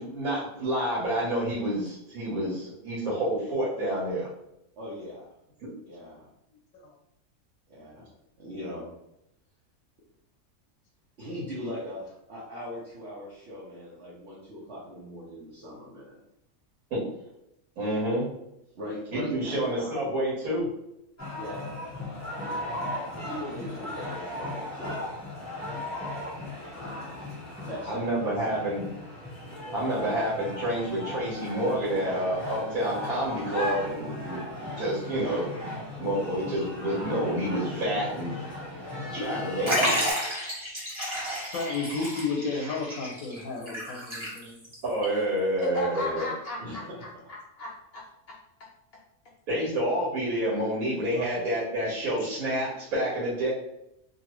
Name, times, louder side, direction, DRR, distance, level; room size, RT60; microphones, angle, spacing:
voice 1, 0.0-4.3 5.6-5.7 16.9-17.0 17.8-18.3 19.1-20.7 27.9-28.9 29.7-34.4 34.8-35.6 36.0-38.4 39.1-39.9 44.8-46.3 49.5-53.5, right 1 dB, 90° right, -7 dB, 1.5 m, -28 dB
voice 2, 4.8-5.3 5.9-6.3 7.7-8.1 8.4-8.9 11.2-16.2 18.7-20.1 21.4-21.7 22.4-22.9 23.1-25.0 26.7-27.2 27.6-29.0 30.0-30.3 45.8-46.2 46.6-47.0, left 1 dB, 60° right, -9 dB, 1.1 m, -40 dB
sound 1, 21.2-40.1, left 1 dB, 15° left, 0.9 m, -36 dB
Liquid, 39.7-44.7 45.0-45.1 46.1-46.2, equal, 20° right, 1.0 m, -31 dB
voice 3, 41.5-44.6, left 4 dB, 90° left, 1 dB, 1.0 m, -32 dB
voice 4, 45.6-48.4 51.2-51.3, left 2 dB, 60° left, -2 dB, 0.7 m, -36 dB
2.7 x 2.6 x 3.0 m, 0.82 s
omnidirectional pair, 1.5 m